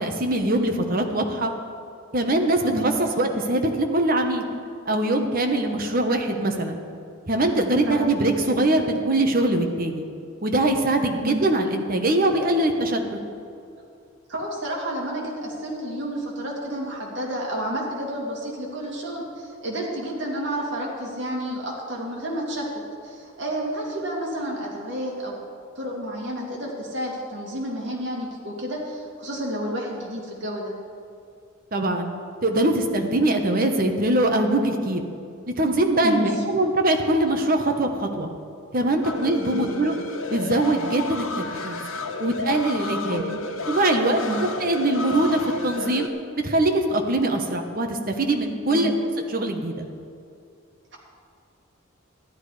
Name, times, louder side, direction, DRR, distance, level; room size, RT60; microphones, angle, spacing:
voice 1, 0.0-1.5 2.1-4.4 4.9-6.8 7.3-10.0 10.4-13.0 31.7-32.1 32.4-35.0 35.5-38.3 38.7-39.9 40.3-41.8 42.2-43.2 43.7-44.2 44.6-46.1 46.4-48.9 49.3-49.9, right 1 dB, 45° right, 4 dB, 1.2 m, -22 dB
voice 2, 14.3-22.7 23.0-25.4 25.8-30.7 36.0-36.4 39.5-40.0 43.0-43.4 44.3-44.4 48.7-49.0, right 1 dB, 60° right, -2 dB, 2.7 m, -30 dB
sound 1, 39.0-46.1, left 2 dB, 80° left, 1.1 m, -32 dB
13.0 x 11.5 x 5.0 m, 2.4 s
head